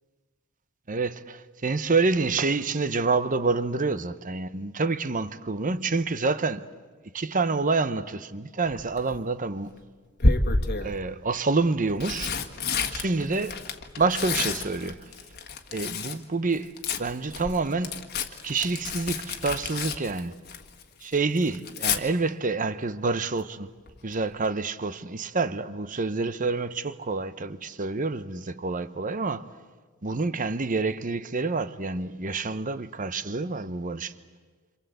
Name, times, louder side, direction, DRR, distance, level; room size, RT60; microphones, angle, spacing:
voice 1, 0.9-6.7 7.1-9.8 10.8-12.3 12.9-13.6 14.0-15.0 15.7-18.0 18.4-20.3 21.0-23.7 24.0-29.5 30.0-34.1, right 3 dB, 35° right, 0.9 m, -27 dB
Tearing, 8.7-9.2 10.2-10.9 11.7-16.2 16.5-20.8 21.1-22.0 23.9-24.1 24.4-24.5, left 3 dB, 50° left, 1.6 m, -29 dB
27.5 x 27.0 x 8.0 m
head